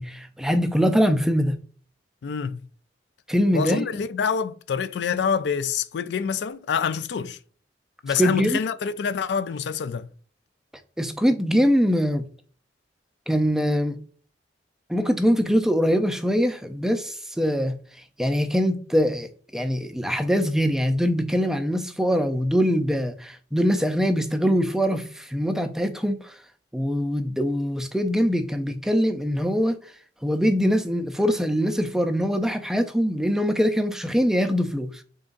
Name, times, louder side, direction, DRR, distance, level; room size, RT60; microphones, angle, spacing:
voice 1, 0.0-1.5 3.3-3.8 8.2-8.6 11.0-12.2 13.3-14.0 14.9-17.8 18.2-26.3 26.7-29.8 30.2-34.9, equal, 5° right, 0.4 m, -23 dB
voice 2, 2.2-2.6 3.5-7.4 8.0-10.1, left 6 dB, 75° left, 0.4 m, -26 dB
3.8 x 3.8 x 2.5 m
head